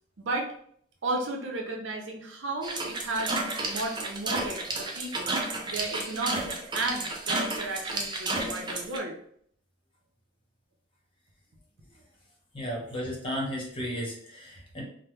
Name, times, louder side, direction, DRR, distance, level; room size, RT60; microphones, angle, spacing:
voice 1, 0.2-0.5 1.0-9.2, right 2 dB, 70° right, 1 dB, 0.7 m, -34 dB
sound 1, 2.6-9.0, right 2 dB, 25° right, 0.5 m, -32 dB
voice 2, 12.5-14.8, equal, 25° left, -3 dB, 1.0 m, -34 dB
2.9 x 2.2 x 3.3 m, 0.63 s
head